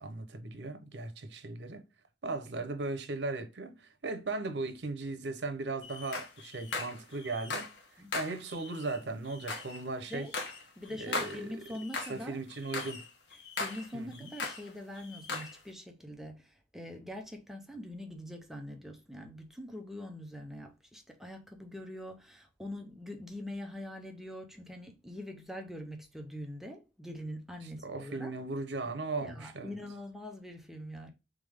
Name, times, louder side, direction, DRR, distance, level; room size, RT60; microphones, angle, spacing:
voice 1, 0.0-1.8 2.2-7.7 8.1-10.3 10.9-11.5 12.1-13.0 13.9-14.3 27.8-29.7, right 3 dB, 80° right, 0.8 m, -37 dB
sound 1, 5.8-7.8 8.1-12.2 12.5-14.7 15.0-15.6, left 3 dB, 85° left, 1.0 m, -39 dB
voice 2, 10.8-12.4 13.6-28.3 29.2-31.1, left 1 dB, ahead, 0.7 m, -43 dB
3.6 x 3.5 x 3.5 m
head